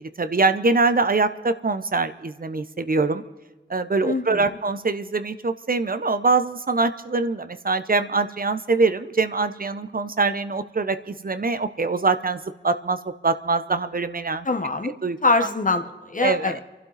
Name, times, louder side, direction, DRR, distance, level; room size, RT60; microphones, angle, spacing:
voice 1, 0.2-3.2 3.7-12.4 12.6-14.5 14.8-15.2 16.2-16.6, right 3 dB, 50° right, 11 dB, 0.8 m, -23 dB
voice 2, 4.0-4.4 14.4-14.9 15.2-16.6, left 3 dB, 45° left, 8 dB, 1.2 m, -23 dB
28.5 x 12.0 x 4.1 m, 1.3 s
wide cardioid pair, 70°, 18 cm